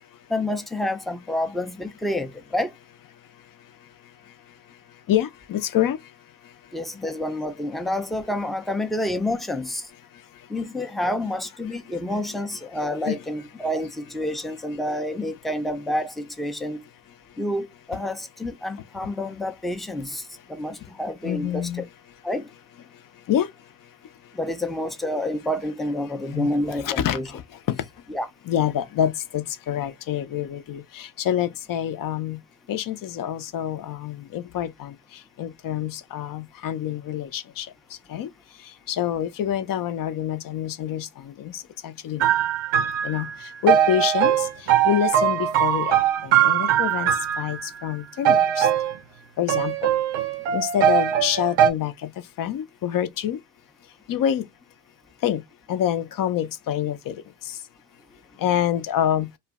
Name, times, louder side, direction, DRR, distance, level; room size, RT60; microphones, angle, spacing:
voice 1, 0.3-2.7 6.7-9.9 10.5-16.8 17.4-21.9 22.2-22.5 24.3-27.3 28.1-28.3, left 1 dB, ahead, 0.4 m, -28 dB
voice 2, 5.1-6.0 13.1-13.2 21.2-21.8 23.3-23.5 26.3-26.5 26.8-27.2 28.5-32.4 32.7-34.9 35.4-37.7 38.1-38.3 38.9-41.1 41.4-41.5 41.8-42.2 43.0-43.3 43.6-44.3 44.8-47.1 47.4-48.7 49.4-49.7 50.5-52.1 52.4-53.4 54.1-54.4 55.2-55.4 55.7-57.1 58.4-59.3, left 10 dB, 50° left, 0.6 m, -26 dB
sound 1, 42.2-47.7 48.2-49.0 49.5-51.7, right 10 dB, 90° right, 0.7 m, -21 dB
2.5 x 2.1 x 3.5 m
supercardioid pair, 70°, 43 cm